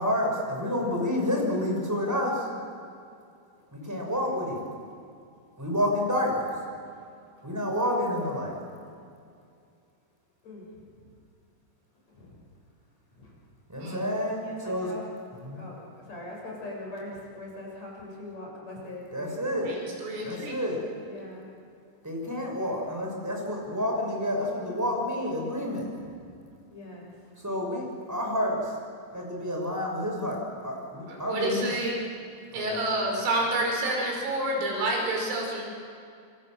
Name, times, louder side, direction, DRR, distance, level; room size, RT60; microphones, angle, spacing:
voice 1, 0.0-2.5 3.7-4.6 5.6-6.6 7.4-8.6 13.7-14.9 15.3-15.6 19.1-19.7 20.2-20.8 22.0-25.9 27.4-28.7 29.1-31.7 32.5-32.8, left 1 dB, 5° right, 0 dB, 5.5 m, -29 dB
voice 2, 14.4-15.0 15.5-19.4 21.0-21.5 26.2-26.3 26.7-27.1, left 2 dB, 35° left, -2 dB, 7.9 m, -41 dB
voice 3, 19.7-20.6 31.1-32.0 32.5-35.6, right 2 dB, 90° right, 0 dB, 7.8 m, -29 dB
28.0 x 25.5 x 7.7 m, 2.4 s
omnidirectional pair, 5.5 m